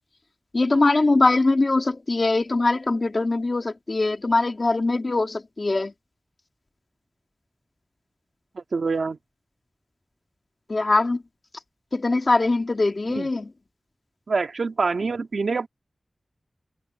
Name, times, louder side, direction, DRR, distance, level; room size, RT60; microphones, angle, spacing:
voice 1, 0.5-5.9 10.7-11.2 11.9-13.4, left 2 dB, 55° left, 2.8 m, -22 dB
voice 2, 8.5-9.2 13.1-13.3 14.3-15.7, right 4 dB, 85° right, 2.5 m, -26 dB
wide cardioid pair, 60°, 0 cm